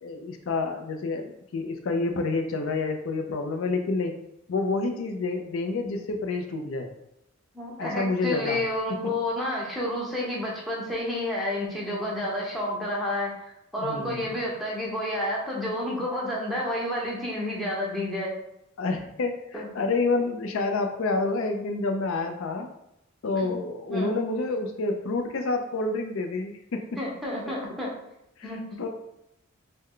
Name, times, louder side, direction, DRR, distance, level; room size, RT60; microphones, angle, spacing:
voice 1, 0.0-4.1 4.5-6.9 7.8-8.6 9.0-9.1 13.8-14.4 18.8-22.7 23.2-27.0 28.4-28.5 28.8-28.9, left 3 dB, 65° left, 5 dB, 0.4 m, -28 dB
voice 2, 7.5-13.3 13.7-18.3 19.5-19.7 23.4-23.5 23.9-24.2 27.0-27.9 28.4-28.6, left 1 dB, ahead, -5 dB, 0.8 m, -30 dB
3.2 x 2.1 x 3.7 m, 0.83 s
head